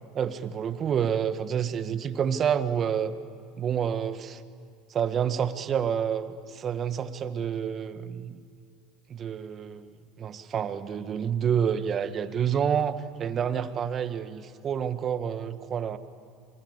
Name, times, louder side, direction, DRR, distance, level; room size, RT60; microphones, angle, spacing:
voice 1, 0.1-3.1 3.6-4.4 4.9-8.4 9.1-16.0, right 8 dB, 40° right, 10 dB, 1.7 m, -28 dB
27.0 x 24.5 x 8.2 m, 2.2 s
hypercardioid pair, 85°, 0 cm